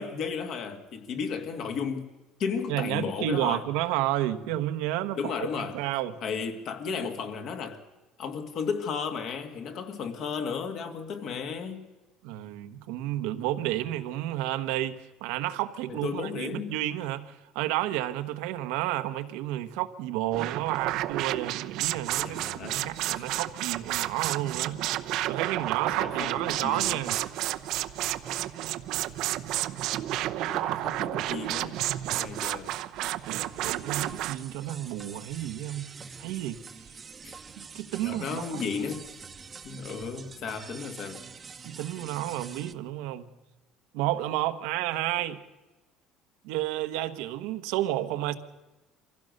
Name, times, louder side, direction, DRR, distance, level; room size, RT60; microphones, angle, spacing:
voice 1, 0.0-2.1 2.4-3.6 5.2-5.8 6.2-7.8 8.2-11.9 15.9-16.8 22.2-23.3 25.8-27.0 30.5-31.8 32.1-32.7 37.2-37.4 38.0-39.1 39.6-41.2, left 6 dB, 50° left, 2.1 m, -34 dB
voice 2, 2.7-6.2 12.2-24.8 25.3-27.2 33.2-35.9 36.2-36.6 37.6-38.7 41.6-43.3 43.9-45.4 46.4-48.3, right 14 dB, 90° right, 1.2 m, -31 dB
sound 1, 20.3-34.4, right 14 dB, 65° right, 0.8 m, -31 dB
sound 2, 26.3-27.9 28.3-42.7, right 5 dB, 25° right, 0.9 m, -47 dB
24.5 x 16.0 x 6.6 m
cardioid pair, 140°, 0 cm